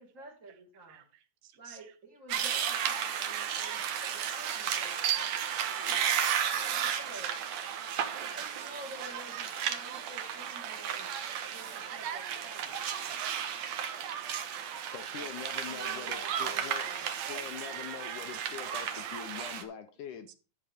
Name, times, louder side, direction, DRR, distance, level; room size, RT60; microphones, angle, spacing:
voice 1, 0.0-1.0 1.6-5.0 5.4-5.5 5.7-6.1 6.5-7.4 8.2-11.1 11.4-12.8 15.1-17.0, right 1 dB, 30° right, 1.6 m, -50 dB
voice 2, 0.9-1.9 5.5-5.6 5.9-6.6 6.9-7.8 9.0-9.1 9.9-11.0 11.7-11.8 13.1-13.9 14.8-14.9 17.2-17.5 18.2-18.7 18.9-19.0 19.4-19.7, right 12 dB, 80° right, 2.7 m, -54 dB
sound 1, 2.3-19.6, right 8 dB, 65° right, 1.9 m, -34 dB
voice 3, 14.9-16.9 17.3-20.3, left 9 dB, 75° left, 2.0 m, -43 dB
13.0 x 7.4 x 3.5 m
omnidirectional pair, 4.2 m